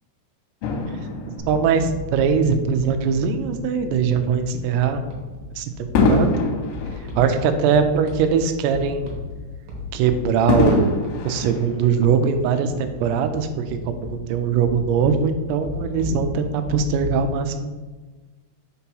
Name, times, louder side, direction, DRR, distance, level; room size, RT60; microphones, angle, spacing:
Fireworks, 0.6-3.2 3.9-4.1 5.9-8.5 8.8-8.9 10.5-12.4 13.1-13.2, left 3 dB, 90° left, 2.9 m, -25 dB
voice 1, 1.2-5.0 5.6-6.3 7.2-9.2 9.9-10.9 11.2-17.7, right 6 dB, 85° right, 8 dB, 2.6 m, -21 dB
sound 1, 1.4-17.2, left 3 dB, 65° right, 2.7 m, -36 dB
6.6 x 2.9 x 5.4 m, 1.3 s
omnidirectional pair, 4.8 m